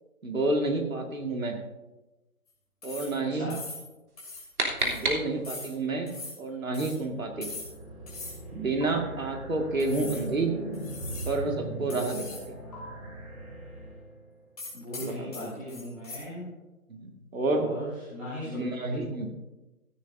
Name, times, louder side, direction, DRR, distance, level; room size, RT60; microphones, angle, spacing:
voice 1, 0.2-1.6 2.8-3.5 4.8-6.1 6.4-7.5 8.5-10.6 11.3-12.4 15.0-15.5 16.9-17.7 18.4-19.3, right 2 dB, 60° right, 3 dB, 2.1 m, -29 dB
sound 1, 2.8-3.2 3.5-3.9 4.2-4.5 4.8-5.1 5.4-5.7 6.1-6.4 6.7-7.0 7.4-7.8 8.1-8.4 8.8-8.9 9.8-10.3 10.7-11.4 11.9-12.5 12.7-12.8 14.6-16.2, left 3 dB, 25° left, 2.9 m, -41 dB
sound 2, 4.1-5.8, right 1 dB, 90° right, 3.2 m, -31 dB
sound 3, 7.0-14.4, right 1 dB, 20° right, 2.2 m, -41 dB
voice 2, 14.7-16.5 17.5-18.6 18.9-19.0, left 1 dB, ahead, -14 dB, 1.8 m, -38 dB
15.5 x 10.5 x 2.6 m, 1.1 s
figure-of-eight pair, 170°, 44 cm